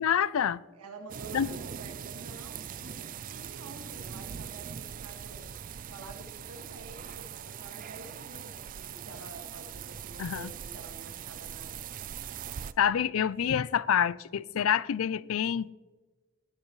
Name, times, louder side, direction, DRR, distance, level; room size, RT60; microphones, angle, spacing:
voice 1, 0.0-0.6 1.3-1.5 10.2-10.5 12.8-15.7, left 8 dB, 65° left, 0.4 m, -27 dB
voice 2, 0.7-5.5 5.9-12.0, right 3 dB, 90° right, 1.8 m, -49 dB
sound 1, 1.1-12.7, right 8 dB, 40° right, 0.4 m, -41 dB
17.0 x 12.5 x 3.1 m
head